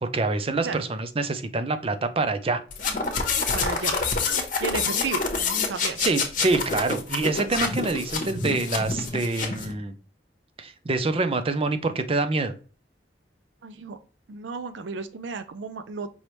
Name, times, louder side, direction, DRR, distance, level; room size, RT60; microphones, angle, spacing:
voice 1, 0.0-2.6 6.0-9.9 10.6-12.5, right 3 dB, 30° right, 10 dB, 0.5 m, -26 dB
sound 1, 2.7-9.7, left 4 dB, 50° left, 1.0 m, -27 dB
voice 2, 3.5-4.0 4.6-5.2 5.7-6.0 13.6-14.0 14.3-16.1, right 4 dB, 85° right, 10 dB, 0.4 m, -33 dB
5.4 x 3.3 x 3.0 m, 0.37 s
head